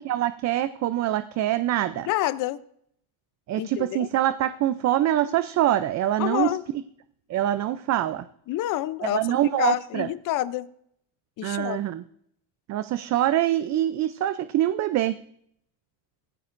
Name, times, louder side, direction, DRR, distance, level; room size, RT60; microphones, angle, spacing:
voice 1, 0.0-2.1 3.5-6.5 7.3-8.3 9.0-10.1 11.4-12.0 12.7-15.2, right 12 dB, 45° right, 12 dB, 0.5 m, -24 dB
voice 2, 2.1-2.6 3.6-4.1 6.2-6.6 8.5-10.7 11.4-11.8, left 15 dB, 55° left, 15 dB, 0.6 m, -28 dB
17.5 x 15.5 x 2.5 m, 0.70 s
cardioid pair, 145°, 38 cm